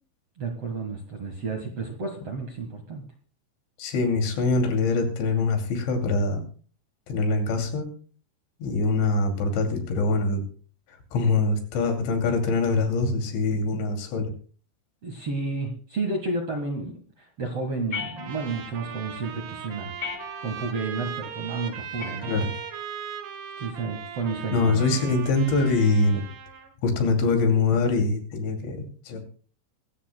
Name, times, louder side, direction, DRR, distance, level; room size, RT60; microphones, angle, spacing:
voice 1, 0.4-3.0 15.0-17.0 17.4-19.9 20.4-22.3 23.6-25.0, right 3 dB, 55° right, 3 dB, 1.8 m, -31 dB
voice 2, 3.8-6.4 7.1-7.9 8.6-10.4 11.1-14.3 22.2-22.5 24.5-26.2 26.8-29.2, left 3 dB, 85° left, 4 dB, 4.9 m, -24 dB
sound 1, 17.9-18.8 20.0-20.8 22.0-22.8, left 7 dB, 20° left, 3.8 m, -38 dB
Trumpet, 18.2-26.7, right 8 dB, 90° right, 4.3 m, -38 dB
24.0 x 13.0 x 2.2 m, 0.41 s
omnidirectional pair, 5.1 m